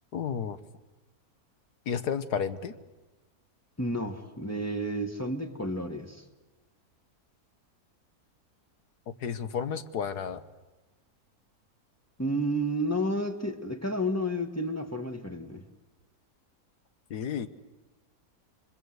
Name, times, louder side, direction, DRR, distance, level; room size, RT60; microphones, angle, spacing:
voice 1, 0.1-0.6 1.9-2.7 9.2-10.4 17.1-17.5, left 7 dB, 85° left, 11 dB, 1.8 m, -32 dB
voice 2, 3.8-6.2 12.2-15.6, equal, 10° left, 5 dB, 1.8 m, -31 dB
28.5 x 24.0 x 8.1 m, 1.1 s
omnidirectional pair, 1.7 m